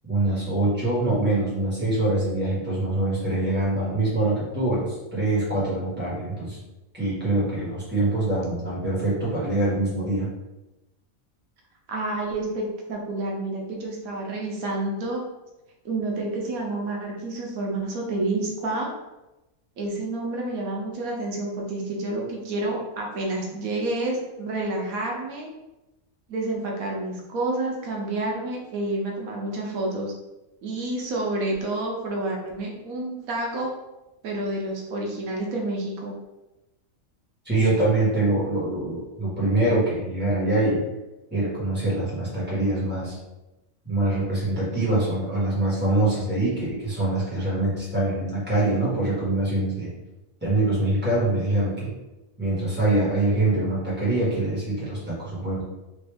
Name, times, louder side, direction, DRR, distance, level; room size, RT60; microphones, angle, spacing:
voice 1, 0.1-6.6 6.9-10.3 37.4-40.8 41.3-43.1 43.8-49.9 50.4-51.9 52.4-55.6, right 2 dB, 10° right, -8 dB, 1.4 m, -24 dB
voice 2, 11.9-15.2 15.8-18.9 19.8-25.5 26.3-30.1 30.6-33.7 34.2-36.1, right 2 dB, 90° right, -1 dB, 1.2 m, -29 dB
3.3 x 2.6 x 3.4 m, 1.0 s
omnidirectional pair, 1.4 m